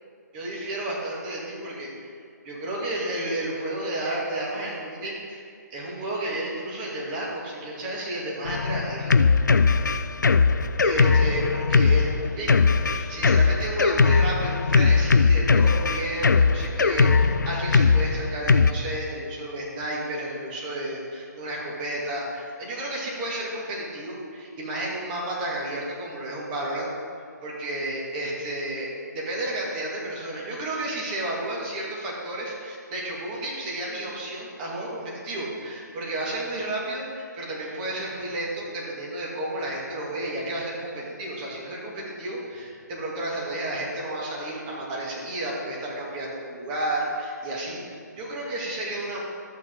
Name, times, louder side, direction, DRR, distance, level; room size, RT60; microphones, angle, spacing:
voice 1, 0.3-2.1 2.4-9.2 10.8-26.9 27.4-49.2, right 1 dB, 25° right, -4 dB, 2.3 m, -32 dB
Drum kit, 8.4-18.7, left 4 dB, 75° left, 0.5 m, -20 dB
12.0 x 8.3 x 3.9 m, 2.3 s
figure-of-eight pair, 145°, 10 cm